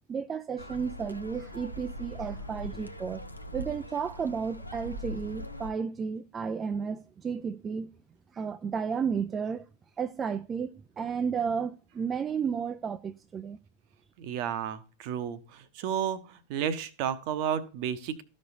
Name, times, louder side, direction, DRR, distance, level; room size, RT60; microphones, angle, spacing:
voice 1, 0.1-3.2 3.5-7.9 8.3-9.7 10.0-13.6, right 6 dB, 20° right, 0.4 m, -33 dB
sound 1, 0.6-5.7, equal, 90° left, 0.7 m, -41 dB
voice 2, 14.2-18.2, right 9 dB, 45° right, 0.8 m, -32 dB
14.0 x 5.3 x 2.7 m
figure-of-eight pair, 90°, 0 cm